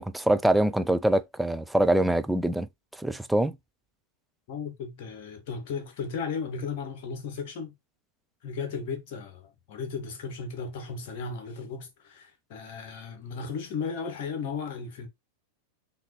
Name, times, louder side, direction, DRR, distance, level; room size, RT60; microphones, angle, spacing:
voice 1, 0.0-2.7 3.0-3.5, right 1 dB, 5° right, 0.4 m, -24 dB
voice 2, 4.5-7.8 8.4-15.1, left 5 dB, 50° left, 1.3 m, -35 dB
5.7 x 2.7 x 3.0 m
figure-of-eight pair, 90°, 0 cm